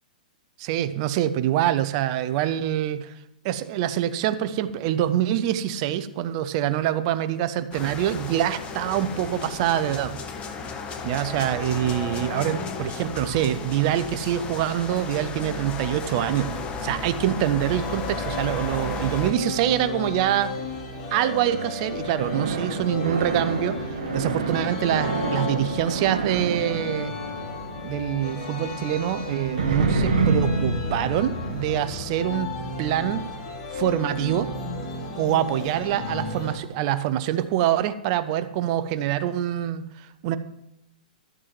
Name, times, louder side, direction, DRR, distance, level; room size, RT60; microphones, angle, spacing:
voice 1, 0.6-3.1 3.4-10.1 11.0-16.5 16.8-20.5 21.1-27.1 27.8-32.5 32.8-33.3 33.7-34.5 35.2-40.4, right 11 dB, 45° right, 13 dB, 0.7 m, -25 dB
sound 1, 7.7-19.3, left 4 dB, 25° left, 1.2 m, -34 dB
sound 2, 17.6-36.6, left 3 dB, 50° left, 2.6 m, -34 dB
sound 3, 22.2-28.1 29.6-34.9, right 3 dB, 70° right, 1.5 m, -28 dB
13.0 x 7.5 x 3.2 m, 0.84 s
hypercardioid pair, 120°, 5 cm